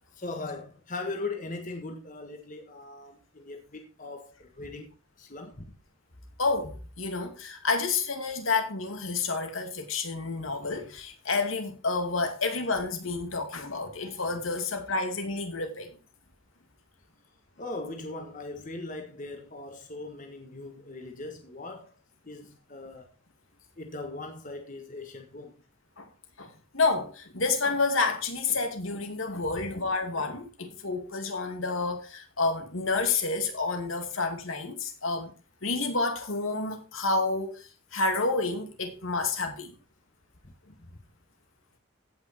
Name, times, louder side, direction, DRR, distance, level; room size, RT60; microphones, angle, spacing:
voice 1, 0.1-5.7 17.6-21.9 22.2-23.1 23.8-25.6 29.5-29.6 40.4-40.5, left 2 dB, 40° left, 1.5 m, -39 dB
voice 2, 6.4-15.9 26.0-26.1 26.4-35.3 35.6-39.7, left 3 dB, 80° left, 2.5 m, -29 dB
16.0 x 6.0 x 4.3 m
head